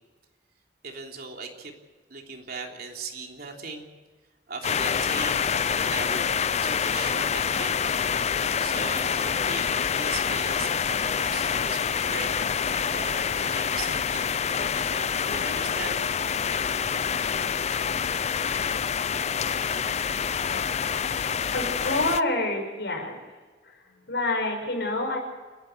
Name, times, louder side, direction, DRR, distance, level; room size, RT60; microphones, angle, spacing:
voice 1, 0.8-1.7 2.1-3.9 4.5-7.8 8.3-16.0, right 4 dB, 60° right, 2 dB, 3.4 m, -39 dB
sound 1, 4.6-22.2, left 7 dB, 40° left, 0.5 m, -27 dB
voice 2, 21.5-23.2 23.6-25.2, left 2 dB, 75° left, 3 dB, 6.2 m, -28 dB
29.5 x 11.5 x 8.2 m, 1.3 s
head